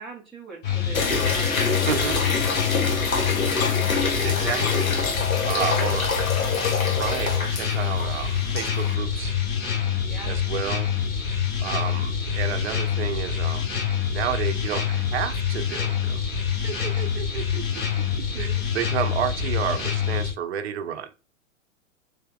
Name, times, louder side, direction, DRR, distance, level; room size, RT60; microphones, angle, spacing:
voice 1, 0.0-3.9 5.3-6.1 6.4-6.6 10.1-10.4, right 3 dB, ahead, 0.3 m, -44 dB
sound 1, 0.6-20.3, left 8 dB, 25° left, 1.1 m, -26 dB
sound 2, 0.9-8.9, left 4 dB, 80° left, 0.9 m, -26 dB
voice 2, 1.9-2.2 4.2-5.0 5.3-6.1 6.9-9.4 10.3-10.9 11.6-13.7 14.1-16.2 16.5-17.8 18.2-21.1, right 9 dB, 50° right, 0.6 m, -31 dB
3.5 x 2.8 x 3.5 m
figure-of-eight pair, 100°, 41 cm